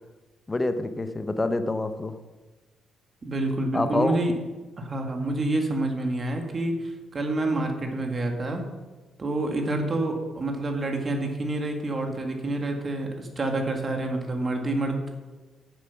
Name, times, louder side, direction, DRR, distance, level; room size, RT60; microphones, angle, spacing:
voice 1, 0.5-2.2 3.7-4.2, left 2 dB, 20° left, 10 dB, 0.8 m, -27 dB
voice 2, 3.2-4.3 4.8-8.6 9.2-15.1, right 2 dB, 35° right, 3 dB, 2.0 m, -28 dB
9.5 x 7.6 x 5.9 m, 1.2 s
cardioid pair, 90°, 0 cm